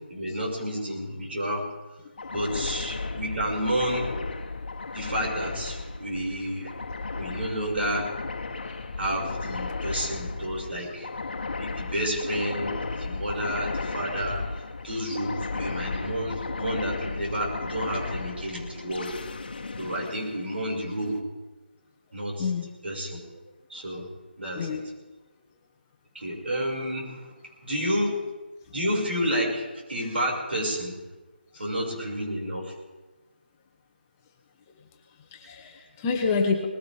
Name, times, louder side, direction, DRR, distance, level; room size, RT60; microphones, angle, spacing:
voice 1, 0.1-1.6 2.3-4.1 4.9-6.8 7.1-8.1 9.0-11.1 11.6-19.1 19.8-21.2 22.1-22.5 22.8-23.2 23.7-24.1 24.4-24.8 26.1-27.3 27.6-28.2 28.7-30.9 31.5-32.7, equal, 75° right, -2 dB, 6.1 m, -30 dB
sound 1, 2.2-21.0, left 3 dB, 55° left, 1.3 m, -35 dB
voice 2, 35.3-36.6, left 5 dB, 15° left, 1 dB, 1.0 m, -27 dB
20.0 x 16.5 x 3.6 m, 1.2 s
figure-of-eight pair, 170°, 6 cm